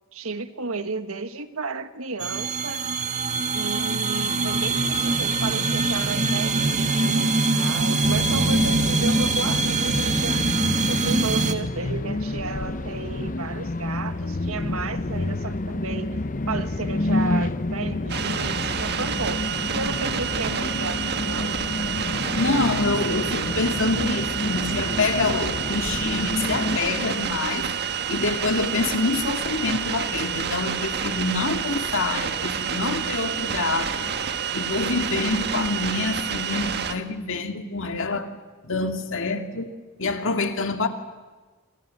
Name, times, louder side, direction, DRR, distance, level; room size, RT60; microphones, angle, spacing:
voice 1, 0.1-2.9 3.5-10.5 10.9-21.6, right 3 dB, 80° right, 1.6 m, -33 dB
sound 1, 2.2-11.5, right 3 dB, 35° right, 1.8 m, -23 dB
sound 2, 8.0-26.8, left 2 dB, 40° left, 0.8 m, -29 dB
sound 3, 18.1-36.9, right 7 dB, 50° right, 1.6 m, -28 dB
voice 2, 22.3-27.7 28.1-34.1 34.5-38.3 38.6-39.7 40.0-40.9, left 3 dB, 65° left, 2.3 m, -26 dB
28.0 x 27.5 x 7.6 m
head